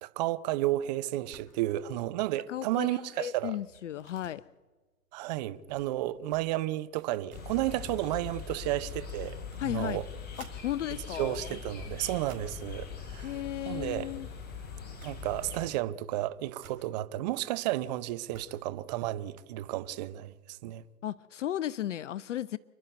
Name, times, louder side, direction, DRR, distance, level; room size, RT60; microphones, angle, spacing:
voice 1, 0.0-3.6 5.1-9.4 9.6-10.1 11.2-13.3 13.7-14.1 15.0-20.8, right 15 dB, 25° right, 0.7 m, -32 dB
sound 1, 1.2-1.6 1.9-2.2 2.5-10.6 11.2-12.7 13.6-14.4 14.6-14.7 15.0-15.7 16.0-18.9, right 7 dB, 60° right, 4.3 m, -58 dB
voice 2, 2.5-4.4 9.6-10.0 10.5-11.6 13.2-14.3 21.0-22.6, left 12 dB, 50° left, 0.6 m, -35 dB
sound 2, 7.3-15.7, left 6 dB, 20° left, 4.4 m, -42 dB
27.5 x 12.0 x 9.2 m
hypercardioid pair, 130°, 47 cm